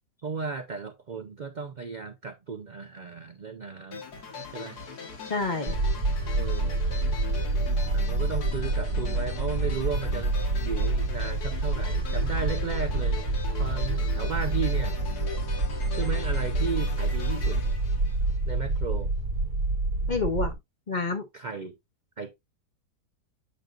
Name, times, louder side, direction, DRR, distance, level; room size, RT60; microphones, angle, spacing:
voice 1, 0.2-4.1 4.5-4.8 6.4-6.9 7.9-10.3 10.6-13.2 13.6-15.0 15.9-17.6 18.5-19.1 21.3-21.8 22.2-22.3, right 5 dB, 70° right, 0.4 m, -35 dB
sound 1, 3.9-18.7, left 4 dB, 75° left, 2.0 m, -40 dB
voice 2, 5.3-5.7 20.1-20.6 20.9-21.2, left 3 dB, 40° left, 0.7 m, -28 dB
sound 2, 5.7-20.5, right 2 dB, 90° right, 2.1 m, -27 dB
8.6 x 5.2 x 2.5 m
omnidirectional pair, 1.7 m